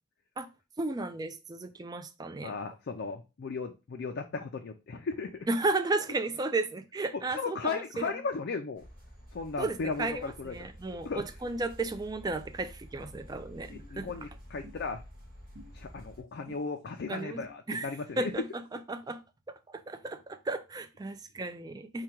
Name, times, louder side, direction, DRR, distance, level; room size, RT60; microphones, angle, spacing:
voice 1, 0.8-2.5 5.5-8.1 9.6-14.1 17.1-17.4 17.7-17.9 18.2-19.2 19.5-22.0, right 3 dB, 20° right, 0.3 m, -34 dB
voice 2, 2.4-5.5 7.3-8.8 9.3-10.5 11.0-11.2 13.7-15.0 15.7-18.3, left 4 dB, 55° left, 0.4 m, -36 dB
sound 1, 8.7-16.2, equal, 40° right, 2.0 m, -50 dB
sound 2, 13.7-13.9 14.6-14.8 15.5-15.7 16.5-16.6 17.4-17.5 18.3-18.4, left 1 dB, 75° right, 1.8 m, -48 dB
4.8 x 2.3 x 4.3 m
head